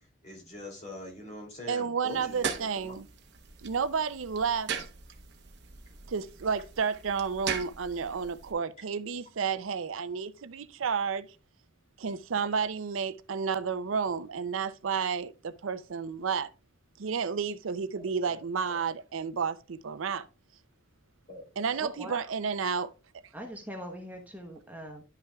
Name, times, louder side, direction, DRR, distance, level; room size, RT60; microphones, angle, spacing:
voice 1, 0.0-2.9 17.9-18.4 18.7-18.8 21.3-21.4, left 1 dB, 35° left, 2.7 m, -44 dB
voice 2, 1.7-3.1 3.6-4.7 6.1-11.3 12.0-16.5 17.0-20.3 21.6-22.9, right 6 dB, 90° right, 0.5 m, -31 dB
sound 1, 2.1-8.5, right 6 dB, 60° right, 0.9 m, -40 dB
voice 3, 21.8-22.3 23.3-25.0, equal, 10° right, 0.9 m, -42 dB
11.0 x 5.7 x 2.3 m
head